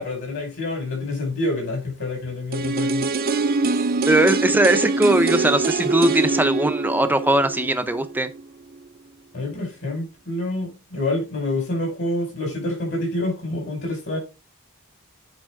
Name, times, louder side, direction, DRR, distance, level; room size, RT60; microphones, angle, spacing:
voice 1, 0.0-3.1 9.3-14.2, left 2 dB, 55° left, 5.0 m, -27 dB
sound 1, 2.5-8.4 8.7-8.8, right 3 dB, 45° right, 0.6 m, -24 dB
voice 2, 4.1-8.3, right 1 dB, 10° right, 0.6 m, -20 dB
9.0 x 4.9 x 3.6 m
head